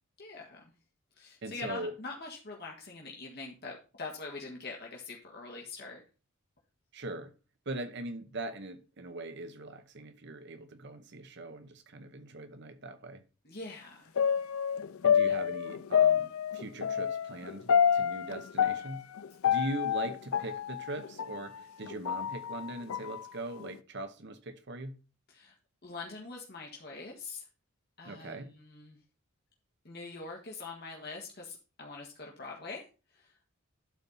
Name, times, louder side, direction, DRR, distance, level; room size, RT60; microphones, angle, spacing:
voice 1, 0.2-0.7 1.2-6.0 13.4-14.1 15.3-15.4 25.3-25.5 25.8-27.4 28.0-29.0 29.8-32.8 33.1-33.4, left 3 dB, 50° left, 1.7 m, -44 dB
voice 2, 1.4-1.9 6.9-7.3 7.7-13.2 15.0-19.1 19.4-25.0 28.0-28.5, right 2 dB, 55° right, 1.0 m, -41 dB
sound 1, 14.2-21.4 21.8-23.2 23.6-23.7, left 8 dB, 85° left, 0.5 m, -28 dB
11.5 x 4.3 x 5.4 m
head